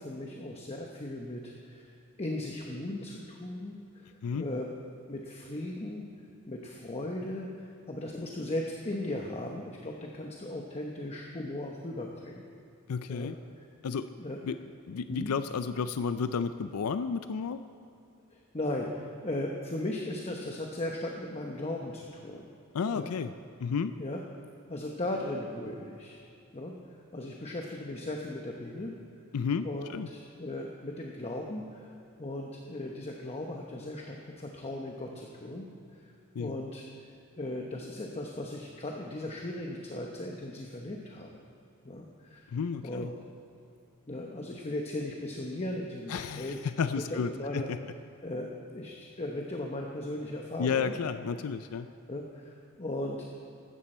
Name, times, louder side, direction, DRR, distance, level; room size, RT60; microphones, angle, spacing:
voice 1, 0.0-4.7 5.1-6.1 6.5-12.4 13.1-13.3 13.6-13.7 14.1-14.4 15.1-15.3 18.3-22.5 22.9-23.1 24.0-24.2 24.7-26.2 26.5-26.8 27.1-28.9 29.6-35.7 35.9-36.0 36.4-37.1 37.4-41.4 41.8-42.6 42.8-43.1 44.1-46.6 47.0-47.7 48.2-50.9 51.3-51.4 52.1-53.2, left 1 dB, 30° left, 0 dB, 0.9 m, -37 dB
voice 2, 12.9-13.4 13.8-14.1 14.4-14.6 14.9-17.6 22.7-23.3 23.6-23.9 29.3-30.1 36.4-36.5 42.5-43.1 46.1-47.8 50.6-51.9, left 5 dB, 85° left, 11 dB, 0.4 m, -32 dB
15.5 x 13.0 x 4.4 m, 2.5 s
head